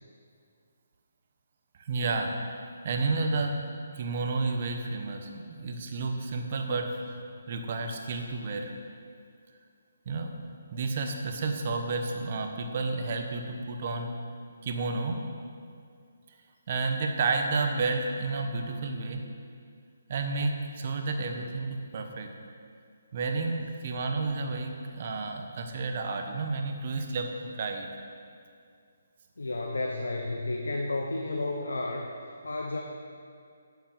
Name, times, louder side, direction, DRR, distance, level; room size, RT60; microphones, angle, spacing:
voice 1, 1.8-2.3 2.8-3.6 3.9-7.1 7.5-8.7 10.0-10.3 10.7-14.1 14.6-15.2 16.7-19.2 20.1-22.3 23.1-27.9, right 3 dB, 45° right, 4 dB, 1.3 m, -31 dB
voice 2, 29.4-32.8, left 2 dB, 85° left, 2 dB, 1.1 m, -32 dB
8.9 x 7.4 x 7.4 m, 2.3 s
hypercardioid pair, 150°, 0 cm